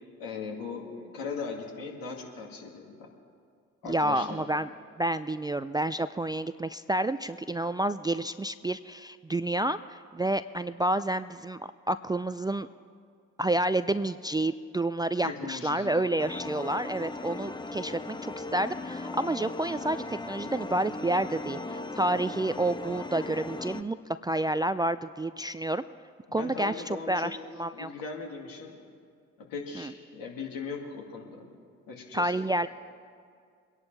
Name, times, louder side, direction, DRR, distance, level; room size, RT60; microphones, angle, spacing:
voice 1, 0.2-3.1 3.8-4.5 15.2-16.0 26.3-27.3 27.7-28.8 29.5-31.4 31.9-32.4, left 5 dB, 70° left, 0 dB, 2.3 m, -38 dB
voice 2, 3.9-4.7 5.0-11.6 11.9-12.7 13.4-25.8 26.3-27.9 29.8-29.9 32.1-32.7, right 1 dB, 10° right, 12 dB, 0.4 m, -29 dB
sound 1, 16.2-23.8, left 2 dB, 10° left, 0.9 m, -38 dB
24.0 x 11.0 x 3.4 m, 2.2 s
hypercardioid pair, 40°, 36 cm